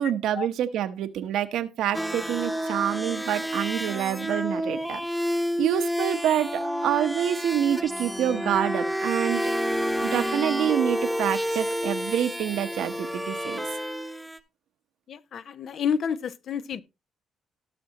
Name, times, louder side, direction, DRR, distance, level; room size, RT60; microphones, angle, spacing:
voice 1, 0.0-5.0 5.6-9.4 10.0-13.6, right 10 dB, 85° right, 1.0 m, -27 dB
sound 1, 1.9-14.4, equal, ahead, 1.0 m, -29 dB
voice 2, 15.1-16.8, left 7 dB, 60° left, 0.6 m, -29 dB
18.0 x 6.2 x 2.9 m
cardioid pair, 90°, 0 cm